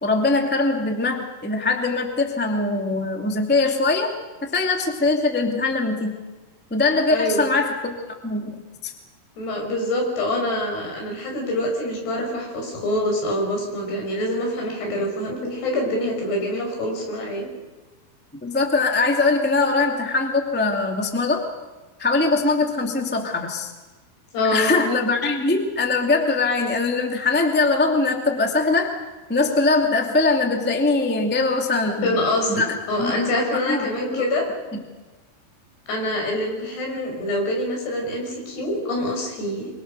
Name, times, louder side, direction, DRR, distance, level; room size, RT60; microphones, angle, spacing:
voice 1, 0.0-4.1 4.4-6.2 6.7-7.9 8.2-8.9 18.4-21.5 22.0-23.7 24.5-28.9 29.3-32.2 32.5-34.2 34.7-34.8, left 3 dB, 10° left, 3 dB, 0.6 m, -22 dB
voice 2, 7.1-7.5 9.4-17.5 24.3-24.7 32.0-34.4 35.9-39.7, left 1 dB, 60° left, 1 dB, 7.7 m, -25 dB
25.5 x 24.5 x 6.7 m, 1.2 s
omnidirectional pair, 5.3 m